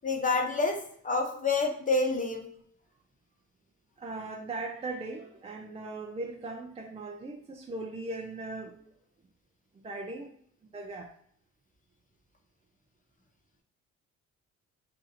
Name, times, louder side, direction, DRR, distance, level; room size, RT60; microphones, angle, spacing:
voice 1, 0.0-2.4, left 3 dB, 25° left, 0.8 m, -28 dB
voice 2, 4.0-8.8 9.8-10.3 10.7-11.1, right 2 dB, 20° right, 0.4 m, -39 dB
2.7 x 2.5 x 4.0 m
cardioid pair, 90°, 30 cm